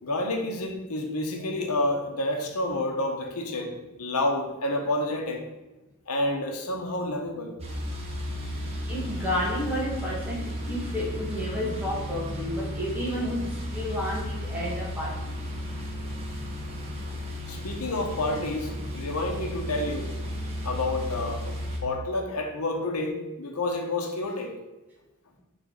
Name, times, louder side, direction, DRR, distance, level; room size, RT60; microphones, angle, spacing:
voice 1, 0.0-5.4 6.1-7.5 16.7-16.8 17.1-17.2 17.5-20.3 20.6-24.5, left 2 dB, 80° left, 3 dB, 0.9 m, -29 dB
sound 1, 7.6-21.8, equal, 30° right, 1.1 m, -34 dB
voice 2, 8.9-15.3, equal, 10° right, -5 dB, 1.5 m, -31 dB
6.8 x 4.0 x 3.9 m, 1.1 s
head